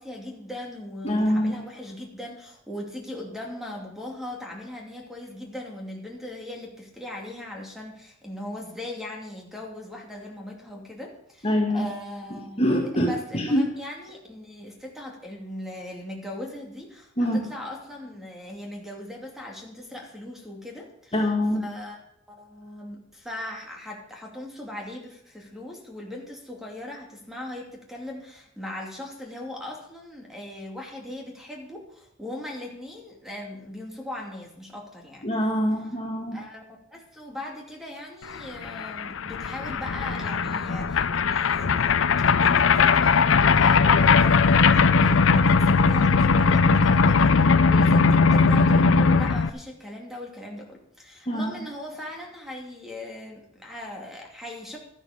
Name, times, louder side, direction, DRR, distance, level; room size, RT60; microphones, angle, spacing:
voice 1, 0.0-11.5 11.7-12.7 13.0-21.1 21.6-22.0 22.3-35.3 36.3-36.6 36.9-54.8, left 1 dB, ahead, 0 dB, 2.6 m, -39 dB
voice 2, 1.0-1.6 11.4-11.9 12.6-13.7 17.2-17.5 21.1-21.7 35.2-36.4 51.3-51.6, equal, 30° left, 0 dB, 2.0 m, -24 dB
sound 1, 38.4-38.5 38.6-49.5, left 5 dB, 70° left, 0.6 m, -19 dB
13.0 x 11.5 x 5.1 m, 0.74 s
head